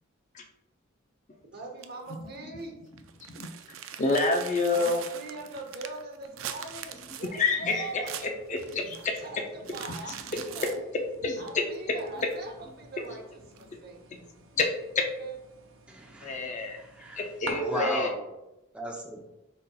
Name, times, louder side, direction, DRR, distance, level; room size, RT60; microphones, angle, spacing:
voice 1, 1.4-2.8 4.7-8.2 9.2-10.8 11.4-14.2 15.2-15.4, right 3 dB, 50° right, 1 dB, 0.8 m, -42 dB
sound 1, 1.8-2.1 2.6-2.7 2.9-9.3 9.6-10.8 11.5-11.6 12.0-12.6 13.6-13.7, right 9 dB, 70° right, 0.3 m, -42 dB
voice 2, 4.0-5.0 7.3-9.2 10.1-10.7 11.2-11.6 12.2-12.3 14.6-15.1 16.2-16.8 17.2-18.1, left 3 dB, 35° left, 3 dB, 0.5 m, -28 dB
sound 2, 6.2-17.5, right 3 dB, 85° right, 0.8 m, -51 dB
voice 3, 15.9-17.2 17.6-18.3 18.7-19.2, right 1 dB, 5° right, -2 dB, 0.6 m, -36 dB
5.2 x 4.0 x 2.3 m, 0.94 s
head